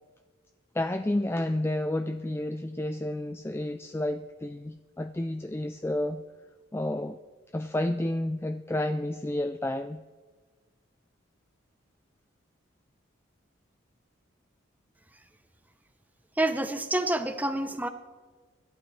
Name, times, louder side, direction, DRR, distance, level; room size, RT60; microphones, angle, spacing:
voice 1, 0.7-6.2 6.7-7.2 7.5-10.0, left 1 dB, 10° left, 8 dB, 0.3 m, -30 dB
voice 2, 16.4-17.9, right 1 dB, 10° right, 9 dB, 0.7 m, -28 dB
25.0 x 12.0 x 3.2 m, 1.4 s
head